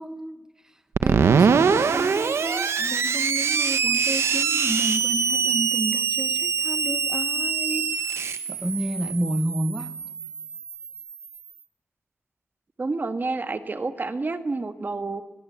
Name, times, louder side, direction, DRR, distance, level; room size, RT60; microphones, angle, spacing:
voice 1, 0.0-10.0, right 1 dB, 15° right, 1.2 m, -31 dB
Screech, 0.9-11.4, right 6 dB, 85° right, 1.2 m, -24 dB
voice 2, 12.8-15.2, right 3 dB, 45° right, 1.5 m, -29 dB
22.5 x 20.0 x 8.6 m
cardioid pair, 65°, 4 cm